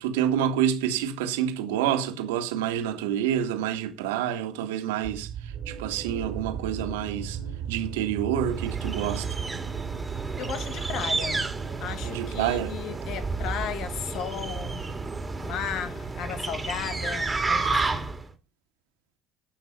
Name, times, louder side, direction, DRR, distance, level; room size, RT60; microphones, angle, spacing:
voice 1, 0.0-7.4 7.7-9.3 12.0-12.7, right 10 dB, 70° right, 2.0 m, -28 dB
sound 1, 5.0-17.6, right 8 dB, 50° right, 2.0 m, -37 dB
sound 2, 8.5-18.3, right 3 dB, 15° right, 2.2 m, -31 dB
voice 2, 10.4-11.5 11.8-14.9 15.4-18.1, left 9 dB, 55° left, 1.3 m, -35 dB
14.5 x 5.9 x 5.6 m
hypercardioid pair, 60°, 0 cm